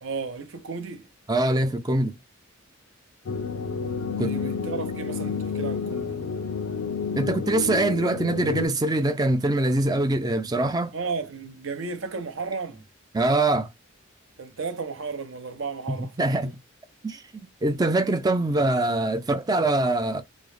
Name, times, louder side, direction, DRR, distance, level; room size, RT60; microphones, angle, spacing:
voice 1, 0.0-1.1 4.2-6.1 10.9-12.8 14.4-16.5, right 4 dB, 65° right, 0.6 m, -34 dB
voice 2, 1.3-2.1 4.2-4.3 7.2-10.9 13.1-13.7 16.2-16.5 17.0-20.2, right 2 dB, 20° right, 0.3 m, -23 dB
sound 1, 3.3-8.7, left 5 dB, 80° left, 0.4 m, -30 dB
3.6 x 2.0 x 3.2 m
head